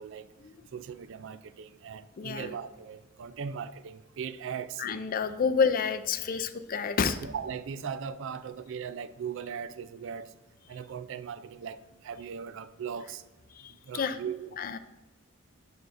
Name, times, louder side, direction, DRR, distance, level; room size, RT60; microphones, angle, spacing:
voice 1, 0.7-4.8 7.2-10.3 10.7-13.2 13.9-14.6, right 7 dB, 65° right, 0.4 m, -38 dB
voice 2, 2.2-2.5 4.8-7.2 13.6-14.2 14.6-14.8, left 6 dB, 45° left, 0.4 m, -29 dB
7.1 x 6.2 x 2.5 m
head